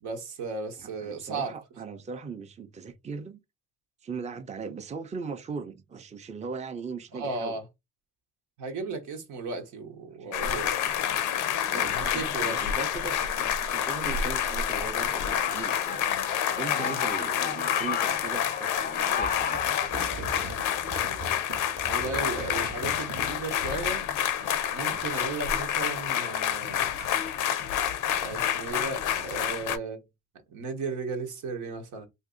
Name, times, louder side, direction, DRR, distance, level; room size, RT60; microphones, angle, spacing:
voice 1, 0.0-1.6 7.1-7.6 8.6-10.7 11.7-12.6 16.7-17.0 21.8-24.0 24.7-26.9 28.2-30.0 30.5-32.1, right 3 dB, 85° right, 1.0 m, -35 dB
voice 2, 0.8-3.4 4.0-7.6 10.2-10.7 11.7-16.1 16.5-19.6 24.9-25.1, right 5 dB, 25° right, 0.5 m, -39 dB
sound 1, 10.3-29.8, left 9 dB, 90° left, 0.5 m, -28 dB
sound 2, 14.5-19.9, left 7 dB, 30° left, 0.4 m, -35 dB
sound 3, 18.9-23.4 24.2-25.5 25.9-26.5 27.0-28.8, right 3 dB, 50° right, 0.9 m, -43 dB
2.7 x 2.6 x 3.7 m
cardioid pair, 90°, 30 cm